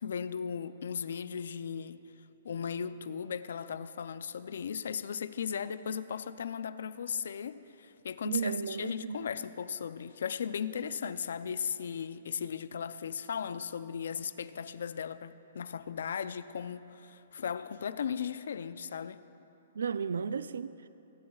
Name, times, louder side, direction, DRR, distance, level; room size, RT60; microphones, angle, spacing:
voice 1, 0.0-2.0 2.4-19.2, left 7 dB, 75° left, 0.5 m, -37 dB
voice 2, 8.2-9.2 19.7-20.9, right 6 dB, 85° right, 0.4 m, -34 dB
26.0 x 12.0 x 2.4 m
hypercardioid pair, 145°, 0 cm